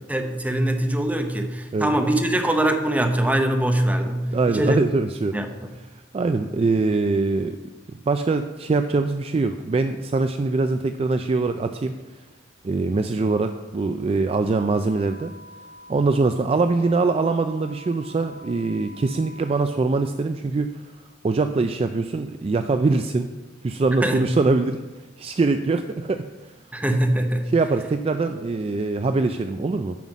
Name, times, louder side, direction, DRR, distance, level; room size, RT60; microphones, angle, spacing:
voice 1, 0.1-4.8 5.3-5.5 24.0-24.3 26.7-27.5, right 1 dB, 10° right, 5 dB, 0.8 m, -22 dB
voice 2, 4.3-5.3 6.1-7.6 8.1-11.9 12.6-15.3 15.9-20.7 21.2-23.3 23.6-24.8 25.2-26.5 27.5-30.0, right 3 dB, 30° right, 8 dB, 0.3 m, -23 dB
sound 1, 14.5-19.5, left 1 dB, 65° right, 1.5 m, -46 dB
9.2 x 5.5 x 6.1 m, 1.2 s
head